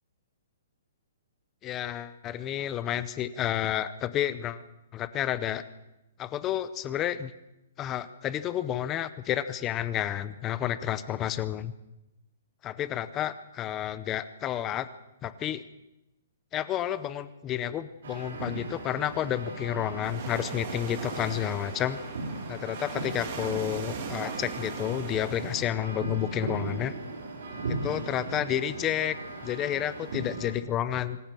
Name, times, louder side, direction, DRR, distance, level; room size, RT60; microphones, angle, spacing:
voice 1, 1.6-4.6 4.9-5.6 6.2-7.3 7.8-11.7 12.6-14.9 15.2-15.6 16.5-22.0 22.5-26.9 27.8-31.2, left 11 dB, 15° left, 14 dB, 0.6 m, -30 dB
sound 1, 18.0-30.5, right 2 dB, 60° right, 6.3 m, -38 dB
sound 2, 20.0-25.7, right 6 dB, 30° right, 2.5 m, -39 dB
25.0 x 13.5 x 7.6 m, 0.94 s
hypercardioid pair, 175°, 0 cm